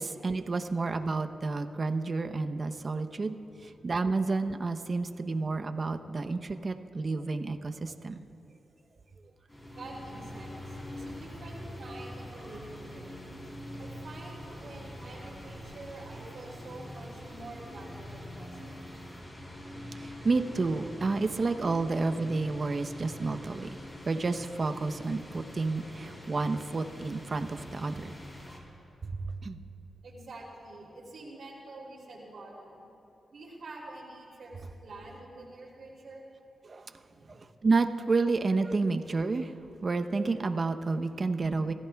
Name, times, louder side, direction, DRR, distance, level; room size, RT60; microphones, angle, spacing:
voice 1, 0.0-3.4 3.6-8.2 19.9-23.7 24.0-28.1 29.1-29.6 36.6-36.8 37.3-39.5 39.8-41.7, right 3 dB, 45° right, 7 dB, 0.8 m, -30 dB
sound 1, 9.5-28.6, equal, 25° left, 3.8 m, -44 dB
voice 2, 9.7-13.0 13.8-18.9 30.0-32.7 33.3-36.3 37.1-37.3 41.4-41.5, right 2 dB, 65° right, -3 dB, 3.1 m, -47 dB
25.5 x 14.5 x 2.3 m, 3.0 s
cardioid pair, 60°, 0 cm